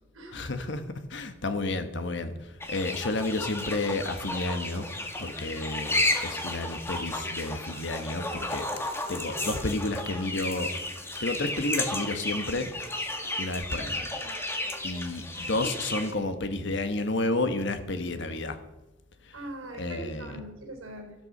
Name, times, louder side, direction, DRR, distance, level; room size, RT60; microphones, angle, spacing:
voice 1, 0.3-4.9 5.2-10.7 11.2-12.7 13.4-14.1 14.5-18.6 19.2-19.3 19.8-20.4, left 2 dB, 60° left, 8 dB, 1.3 m, -31 dB
sound 1, 2.6-16.1, left 1 dB, 10° left, 1.6 m, -33 dB
voice 2, 19.3-21.2, right 1 dB, 85° right, 3 dB, 4.1 m, -42 dB
13.5 x 12.5 x 5.5 m, 1.0 s
head